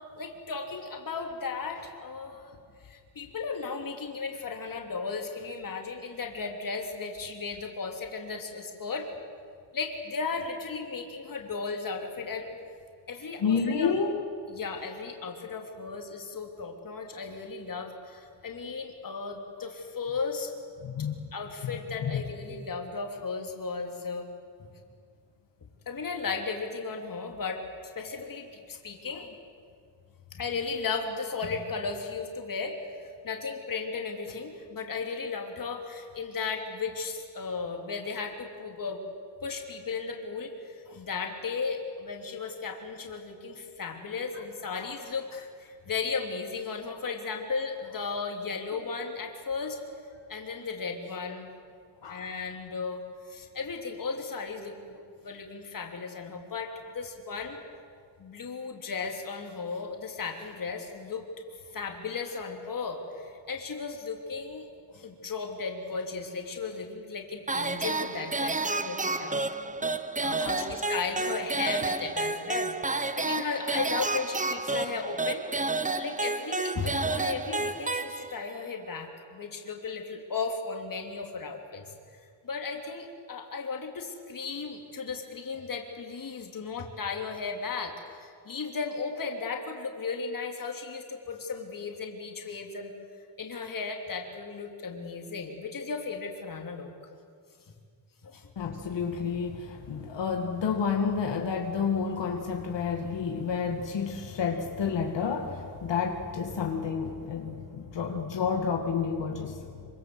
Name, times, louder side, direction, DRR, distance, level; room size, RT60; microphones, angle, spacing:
voice 1, 0.2-2.5 2.8-9.1 9.7-12.5 13.1-13.9 14.5-20.5 21.3-24.3 24.6-24.7 25.9-27.7 27.9-29.3 30.3-39.0 39.4-49.8 50.3-51.5 52.1-57.6 58.2-61.2 61.7-69.4 70.2-75.5 76.0-81.8 82.4-92.9 93.4-96.9 98.2-98.5, left 4 dB, 50° left, 3 dB, 3.2 m, -35 dB
voice 2, 13.4-14.1 20.8-21.3 22.0-22.1 44.7-44.9 52.0-52.2 69.8-69.9 70.4-70.7 98.6-109.9, left 6 dB, 80° left, 2 dB, 2.4 m, -30 dB
sound 1, 67.5-78.6, right 3 dB, 20° right, 0.9 m, -30 dB
26.0 x 25.5 x 7.9 m, 2.2 s
wide cardioid pair, 150°, 43 cm